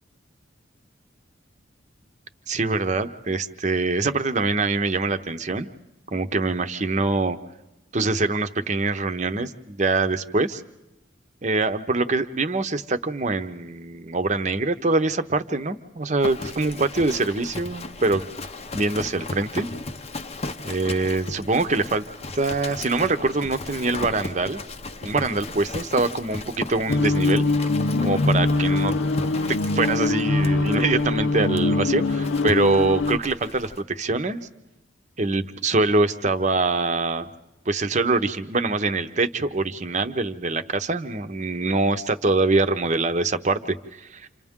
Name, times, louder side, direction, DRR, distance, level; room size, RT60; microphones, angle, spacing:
voice 1, 2.5-5.7 6.1-7.4 7.9-10.6 11.4-18.3 18.7-19.7 20.6-22.0 22.4-24.6 25.0-27.5 28.0-28.9 29.5-34.4 35.2-37.3 37.7-44.3, right 3 dB, 40° right, 9 dB, 0.8 m, -24 dB
Livestock farm animals working animals, 16.2-33.8, left 2 dB, 30° left, 0.7 m, -36 dB
sound 1, 26.9-33.2, left 3 dB, 85° left, 0.6 m, -23 dB
29.5 x 27.0 x 3.6 m, 0.99 s
head